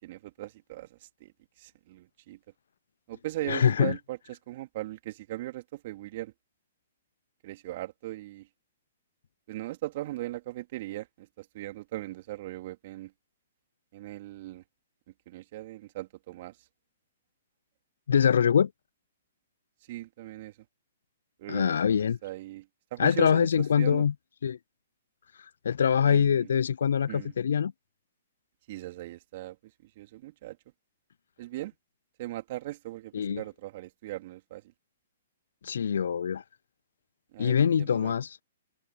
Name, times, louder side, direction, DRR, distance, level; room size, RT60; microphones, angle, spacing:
voice 1, 0.0-1.3 1.6-2.4 3.1-6.3 7.4-8.5 9.5-13.1 13.9-14.6 15.3-16.5 19.9-20.5 21.4-22.7 22.9-23.5 23.8-24.0 26.1-26.5 27.1-27.3 28.7-29.6 29.8-30.6 31.4-31.7 32.2-34.6 37.3-38.1, right 16 dB, 50° right, 2.7 m, -39 dB
voice 2, 3.4-4.0 18.1-18.7 21.5-22.2 23.0-24.1 24.4-24.6 25.6-27.7 33.1-33.4 35.6-36.4 37.4-38.4, left 7 dB, 75° left, 0.3 m, -24 dB
hypercardioid pair, 125°, 0 cm